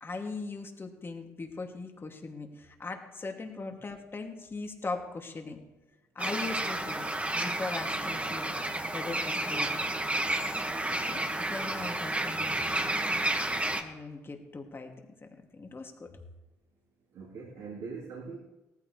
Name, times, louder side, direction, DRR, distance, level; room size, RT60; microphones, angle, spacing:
voice 1, 0.0-5.6 6.1-7.1 7.3-8.5 8.9-9.7 11.1-12.9 13.8-14.9 15.2-16.1, left 3 dB, 30° left, 3 dB, 2.6 m, -39 dB
sound 1, 6.2-13.8, right 1 dB, 15° right, 1.8 m, -31 dB
voice 2, 11.7-12.1 17.1-18.4, right 4 dB, 60° right, -7 dB, 3.7 m, -42 dB
18.5 x 14.0 x 3.4 m, 1.0 s
hypercardioid pair, 50°, 8 cm